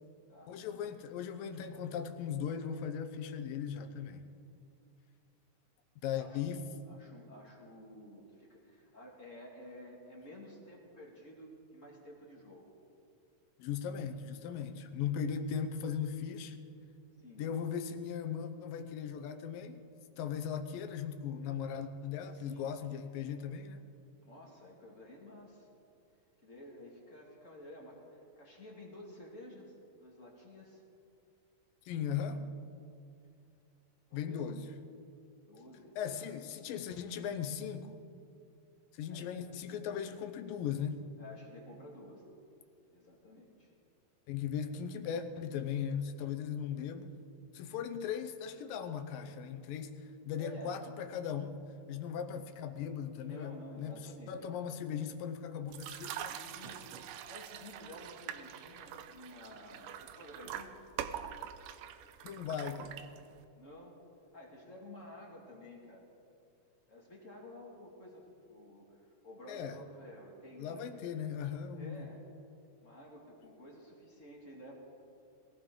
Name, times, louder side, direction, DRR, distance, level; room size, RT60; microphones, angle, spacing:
voice 1, 0.5-4.2 6.0-6.6 13.6-16.6 17.4-19.8 20.2-23.8 31.9-32.5 34.1-34.7 36.0-37.9 38.9-41.0 44.3-47.1 47.5-51.6 51.9-56.4 62.2-63.0 69.5-69.8 70.6-72.1, left 7 dB, 90° left, 7 dB, 2.6 m, -38 dB
voice 2, 6.9-12.7 17.2-17.4 22.3-22.7 24.2-25.7 26.4-29.7 30.0-30.8 34.1-34.4 35.4-36.4 39.1-39.3 41.2-42.4 42.9-43.7 44.6-44.7 50.4-50.8 53.1-54.4 56.3-60.9 63.6-64.0 64.3-66.1 66.9-71.1 71.8-72.2 72.8-74.7, left 1 dB, 25° left, -2 dB, 2.0 m, -52 dB
sound 1, 55.7-63.4, right 10 dB, 85° right, 2.2 m, -44 dB
21.5 x 15.5 x 3.8 m, 2.5 s
omnidirectional pair, 3.9 m